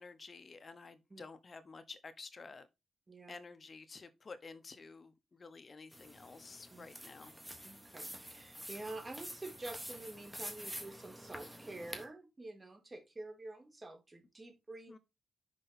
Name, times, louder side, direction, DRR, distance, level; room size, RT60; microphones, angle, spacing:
voice 1, 0.0-2.7 3.3-7.3 14.9-15.0, left 4 dB, 40° left, 1.0 m, -51 dB
sound 1, 5.9-12.0, equal, 5° right, 1.4 m, -48 dB
voice 2, 7.6-15.0, right 2 dB, 25° right, 2.0 m, -48 dB
6.1 x 5.0 x 4.2 m
cardioid pair, 95°, 0 cm